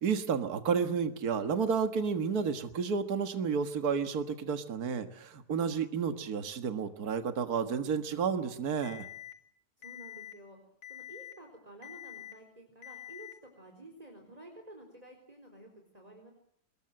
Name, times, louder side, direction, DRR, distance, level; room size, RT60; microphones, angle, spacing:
voice 1, 0.0-9.1, right 6 dB, 65° right, 8 dB, 2.0 m, -31 dB
Alarm, 8.8-9.3 9.8-10.3 10.8-11.3 11.8-12.3 12.8-13.3, left 13 dB, 70° left, 2.9 m, -46 dB
voice 2, 9.8-10.6 10.9-16.3, right 1 dB, 20° right, 3 dB, 4.3 m, -52 dB
25.5 x 21.5 x 7.7 m, 0.66 s
omnidirectional pair, 1.8 m